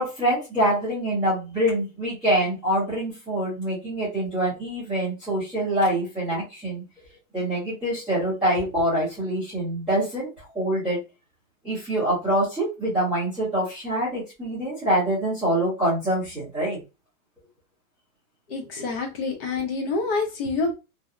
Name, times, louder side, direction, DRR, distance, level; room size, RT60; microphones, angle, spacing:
voice 1, 0.0-6.8 7.3-11.0 11.6-16.8, right 1 dB, ahead, -16 dB, 0.4 m, -25 dB
voice 2, 18.5-20.7, left 3 dB, 40° left, 3 dB, 0.7 m, -27 dB
2.7 x 2.1 x 2.4 m, 0.27 s
hypercardioid pair, 150°, 46 cm